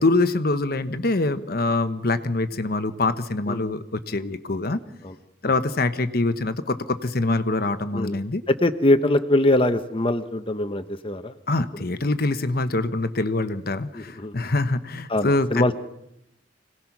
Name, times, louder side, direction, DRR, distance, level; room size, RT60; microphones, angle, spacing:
voice 1, 0.0-4.8 5.4-8.4 11.5-15.6, left 2 dB, 55° left, 10 dB, 1.1 m, -24 dB
voice 2, 8.5-11.3 13.9-14.3 15.1-15.7, left 1 dB, 30° left, 8 dB, 0.9 m, -22 dB
26.0 x 18.5 x 6.0 m, 0.83 s
head